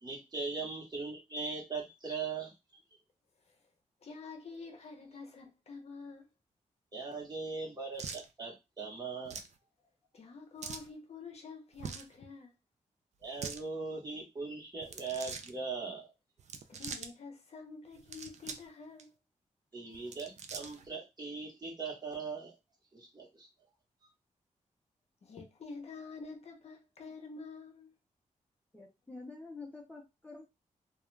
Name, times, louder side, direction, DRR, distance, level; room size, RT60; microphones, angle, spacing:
voice 1, 0.0-2.5 6.9-9.4 13.2-16.1 19.7-22.5 22.9-23.5, right 4 dB, 30° right, 1.1 m, -40 dB
voice 2, 4.0-6.3 10.1-12.5 16.7-19.1 25.2-27.9, left 4 dB, 55° left, 0.6 m, -48 dB
sound 1, 8.0-8.3 9.3-9.5 10.6-10.9 11.7-12.1 13.2-13.6 14.8-15.5 16.4-17.1 17.9-18.7 19.0-19.1 19.9-20.9, right 6 dB, 60° right, 0.4 m, -43 dB
voice 3, 28.7-30.4, left 3 dB, 10° left, 0.6 m, -48 dB
2.3 x 2.3 x 3.1 m
wide cardioid pair, 120°, 13 cm